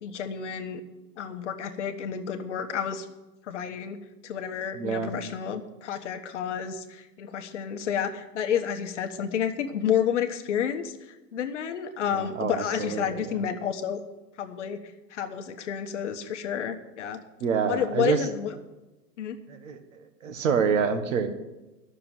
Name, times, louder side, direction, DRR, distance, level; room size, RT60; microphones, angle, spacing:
voice 1, 0.0-0.8 1.2-3.1 3.5-4.0 4.2-10.9 11.3-14.0 14.4-14.8 15.1-17.2 17.7-18.5 19.2-19.4, left 8 dB, 45° left, 6 dB, 1.2 m, -30 dB
voice 2, 4.7-5.1 12.1-13.4 17.4-18.3 19.5-21.3, right 6 dB, 50° right, 8 dB, 1.6 m, -27 dB
11.5 x 6.8 x 9.1 m, 1.1 s
hypercardioid pair, 170°, 49 cm